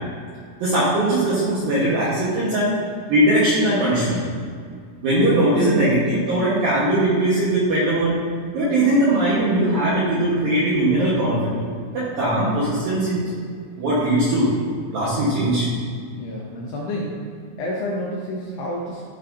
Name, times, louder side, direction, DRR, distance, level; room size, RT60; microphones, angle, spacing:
voice 1, 0.6-2.8 3.1-4.3 5.0-8.2 8.5-11.5 11.9-13.3 13.8-14.5 14.9-15.7, right 1 dB, 75° right, -8 dB, 2.1 m, -20 dB
voice 2, 16.1-17.3 17.6-19.0, left 1 dB, 75° left, -4 dB, 2.5 m, -29 dB
13.0 x 5.5 x 2.6 m, 2.1 s
omnidirectional pair, 5.7 m